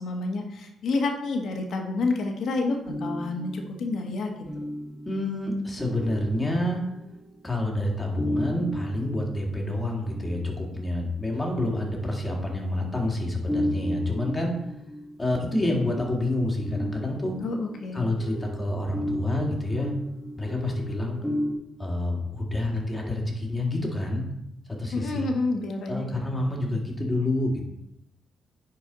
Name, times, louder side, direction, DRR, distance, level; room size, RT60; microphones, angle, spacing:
voice 1, 0.0-4.7 17.4-18.0 24.9-26.4 26.7-26.8, left 3 dB, 70° left, 3 dB, 1.5 m, -29 dB
sound 1, 2.9-7.4 8.2-10.8 11.3-12.8 13.5-21.6, equal, 5° right, 2.7 m, -35 dB
voice 2, 5.1-6.8 7.4-14.5 15.2-17.3 17.9-19.9 20.4-21.2 21.8-24.2 24.7-25.3 25.9-27.6, left 1 dB, 20° left, 0 dB, 2.2 m, -28 dB
10.0 x 4.7 x 4.0 m, 0.84 s
cardioid pair, 90°, 0 cm